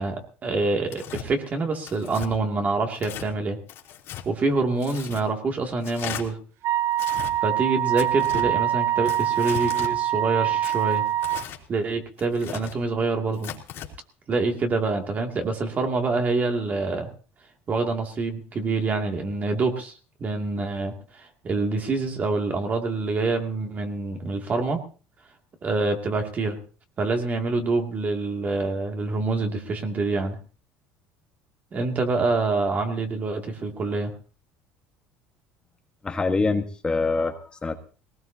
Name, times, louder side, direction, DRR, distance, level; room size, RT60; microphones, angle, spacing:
voice 1, 0.0-3.6 4.3-6.4 7.4-11.0 11.7-13.5 14.3-17.1 17.7-19.9 20.2-24.8 25.6-26.6 27.0-30.4 31.7-34.1, right 3 dB, 30° right, 4 dB, 2.5 m, -26 dB
Tearing, 0.9-1.3 1.9-2.3 2.9-3.3 3.7-4.2 4.8-5.2 5.8-6.2 6.9-7.3 8.0-8.5 9.0-9.9 10.6-11.6 12.2-12.8 13.3-13.9, left 10 dB, 55° left, 3.1 m, -37 dB
Wind instrument woodwind instrument, 6.6-11.5, right 12 dB, 60° right, 0.6 m, -24 dB
voice 2, 36.0-37.8, left 3 dB, 20° left, 4 dB, 1.5 m, -25 dB
20.0 x 18.5 x 2.9 m, 0.37 s
cardioid pair, 120°, 5 cm